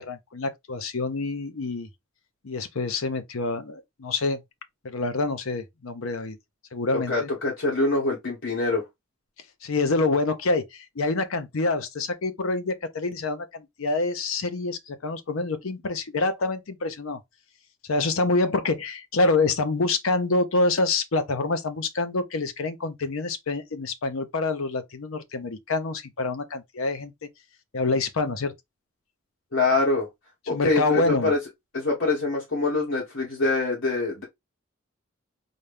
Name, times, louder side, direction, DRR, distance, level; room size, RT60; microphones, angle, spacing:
voice 1, 0.0-1.9 2.4-4.4 4.8-6.4 6.7-7.3 9.6-17.2 17.9-27.3 27.7-28.5 30.5-31.3, left 3 dB, 85° left, 0.7 m, -26 dB
voice 2, 7.1-8.8 29.5-30.1 30.5-31.4 31.7-34.2, left 3 dB, 65° left, 1.3 m, -24 dB
4.1 x 2.3 x 3.3 m
head